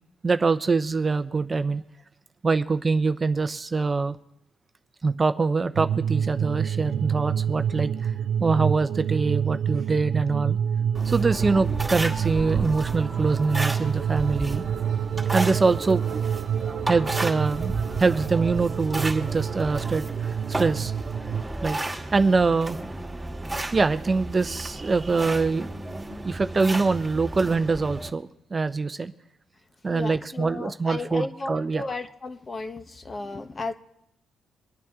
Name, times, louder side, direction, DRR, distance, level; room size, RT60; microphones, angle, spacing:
voice 1, 0.2-1.8 2.4-4.2 5.0-8.1 8.4-10.6 11.1-14.6 15.3-16.2 16.9-17.7 18.0-20.9 21.6-21.8 22.1-22.8 23.7-25.7 26.2-29.1 29.8-31.8, right 4 dB, 30° right, 10 dB, 0.7 m, -24 dB
sound 1, 5.8-21.4, right 8 dB, 70° right, 0.4 m, -28 dB
sound 2, 10.9-28.1, right 2 dB, 10° right, 2.6 m, -33 dB
voice 2, 29.9-33.7, left 3 dB, 30° left, 8 dB, 1.1 m, -34 dB
24.0 x 9.1 x 3.7 m, 0.80 s
cardioid pair, 90°, 0 cm